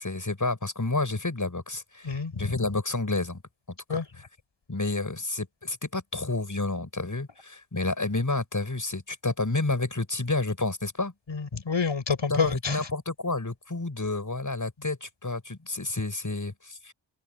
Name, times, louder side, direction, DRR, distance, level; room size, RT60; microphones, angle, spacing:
voice 1, 0.0-3.4 3.9-4.3 4.7-11.1 12.3-16.9, left 2 dB, 40° left, 7.6 m, -30 dB
voice 2, 2.1-2.4 3.9-4.0 11.3-12.9, left 5 dB, 80° left, 5.9 m, -28 dB
cardioid pair, 50°, 44 cm